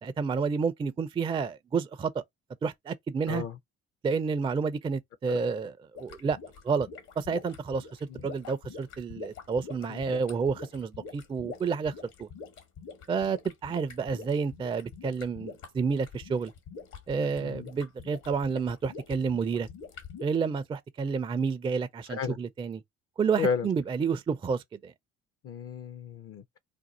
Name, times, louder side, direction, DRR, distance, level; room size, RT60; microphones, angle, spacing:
voice 1, 0.0-2.2 2.6-3.4 4.0-6.4 6.6-6.9 7.2-7.9 8.2-11.9 12.2-12.3 13.1-16.5 17.1-19.7 20.2-22.8 23.2-24.9, right 5 dB, 15° right, 0.3 m, -30 dB
sound 1, 5.9-20.2, left 5 dB, 70° left, 1.2 m, -45 dB
voice 2, 9.9-10.2 17.4-17.7 22.1-22.4 23.4-23.7 25.4-26.6, left 6 dB, 45° left, 0.5 m, -33 dB
2.6 x 2.3 x 4.1 m
hypercardioid pair, 65°, 32 cm